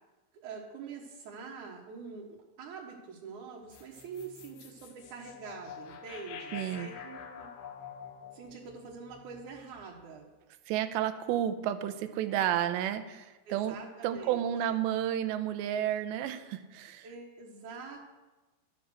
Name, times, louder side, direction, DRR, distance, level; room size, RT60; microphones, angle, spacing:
voice 1, 0.4-7.5 8.3-10.3 13.5-14.5 17.0-18.0, right 5 dB, 60° right, -4 dB, 2.2 m, -45 dB
sound 1, 3.7-10.0, left 7 dB, 65° left, 2.8 m, -47 dB
voice 2, 6.5-6.9 10.7-13.8 14.0-17.1, right 11 dB, 85° right, 10 dB, 2.9 m, -31 dB
12.0 x 10.5 x 6.4 m, 1.1 s
omnidirectional pair, 5.2 m